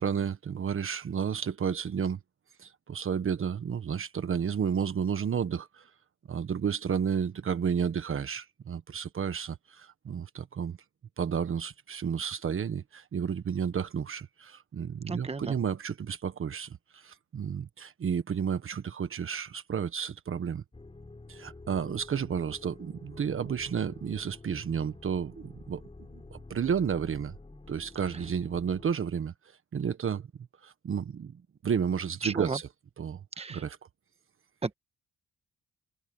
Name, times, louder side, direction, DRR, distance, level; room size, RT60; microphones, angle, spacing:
voice 1, 0.0-2.2 2.6-5.9 6.3-10.8 11.2-20.6 21.3-25.8 26.1-27.3 27.7-29.3 29.7-30.3 30.6-32.7 33.0-33.8, right 7 dB, 45° right, 1.3 m, -32 dB
voice 2, 15.1-15.5 32.2-32.6 33.4-33.6 34.6-34.7, right 4 dB, 20° right, 1.4 m, -33 dB
sound 1, 20.7-28.9, left 2 dB, 20° left, 7.1 m, -49 dB
cardioid pair, 90°, 30 cm